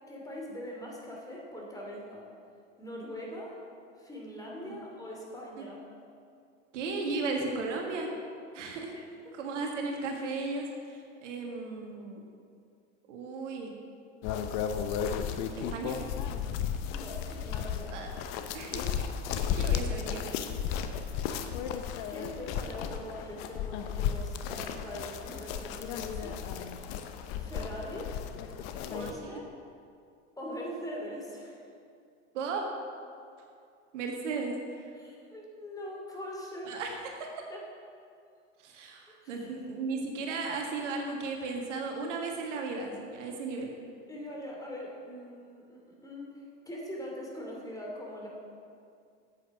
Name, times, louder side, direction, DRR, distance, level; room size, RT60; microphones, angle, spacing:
voice 1, 0.1-2.3 2.8-3.6 4.0-5.8 8.9-9.3 16.9-18.0 22.1-26.4 27.4-28.1 28.9-29.5 30.4-31.6 34.9-36.8 37.5-37.6 39.2-39.5 44.1-48.3, left 1 dB, 10° left, -2 dB, 2.7 m, -42 dB
voice 2, 6.7-8.1 8.5-8.9 9.4-10.7 11.2-12.2 13.1-13.7 15.7-15.9 17.9-18.1 18.5-18.8 19.3-20.5 32.3-32.6 33.9-34.5 36.6-36.9 37.2-37.3 38.6-43.7, right 4 dB, 75° right, 1 dB, 1.7 m, -35 dB
sound 1, 14.2-29.1, left 8 dB, 55° left, 0.9 m, -34 dB
8.7 x 8.1 x 6.0 m, 2.4 s
hypercardioid pair, 90°, 37 cm